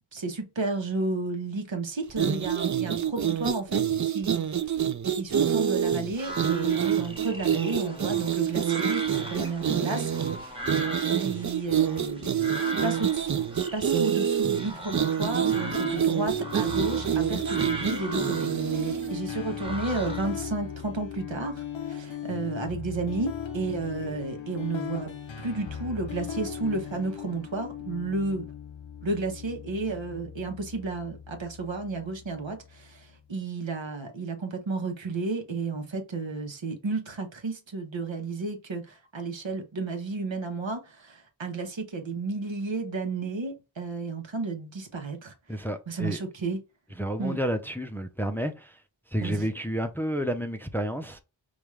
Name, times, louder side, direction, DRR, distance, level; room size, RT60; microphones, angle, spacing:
voice 1, 0.1-4.5 5.1-10.6 10.9-12.3 12.8-28.5 29.0-45.3 45.9-46.6 47.2-47.4 49.2-49.4, right 3 dB, 80° right, 1.0 m, -32 dB
sound 1, 2.1-19.2, right 9 dB, 40° right, 0.4 m, -27 dB
sound 2, 6.1-20.4, right 1 dB, 10° right, 1.1 m, -39 dB
sound 3, 15.2-33.2, left 8 dB, 80° left, 0.7 m, -38 dB
voice 2, 45.5-46.2 46.9-48.8 49.1-51.2, equal, 5° left, 0.5 m, -30 dB
5.1 x 2.4 x 3.1 m
wide cardioid pair, 45°, 45 cm